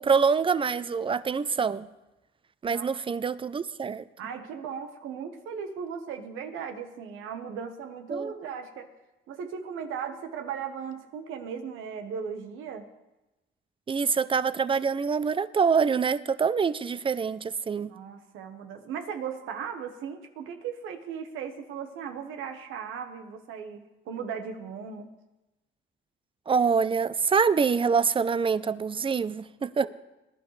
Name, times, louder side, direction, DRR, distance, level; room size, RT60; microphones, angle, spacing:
voice 1, 0.0-1.9 2.6-4.0 8.1-8.3 13.9-17.9 26.5-29.9, right 5 dB, 25° right, 0.5 m, -25 dB
voice 2, 2.7-3.2 4.2-8.9 9.3-12.8 17.7-25.1, right 7 dB, 90° right, 1.2 m, -37 dB
21.0 x 11.0 x 3.2 m
cardioid pair, 90°, 20 cm